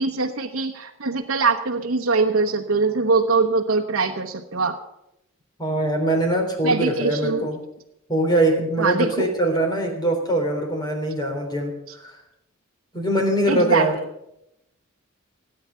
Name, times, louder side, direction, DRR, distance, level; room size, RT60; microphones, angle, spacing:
voice 1, 0.0-4.8 6.6-7.5 8.8-9.3 13.5-13.9, right 4 dB, 70° right, 1 dB, 1.1 m, -22 dB
voice 2, 5.6-7.6 8.1-12.2 12.9-13.9, right 1 dB, 20° left, 2 dB, 3.6 m, -22 dB
17.5 x 8.8 x 7.0 m, 0.82 s
head